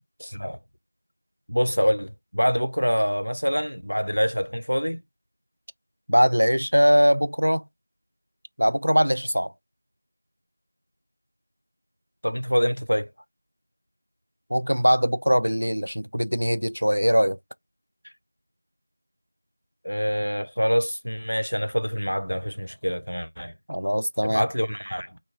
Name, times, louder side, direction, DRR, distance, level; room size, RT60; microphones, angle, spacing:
voice 1, 1.5-5.0 12.2-13.1 19.8-23.5 24.2-25.2, equal, 70° left, 0.6 m, -25 dB
voice 2, 6.1-7.6 8.6-9.5 14.5-17.4 23.7-24.4, equal, 55° right, 0.3 m, -21 dB
3.1 x 2.1 x 2.9 m
figure-of-eight pair, 180°, 0 cm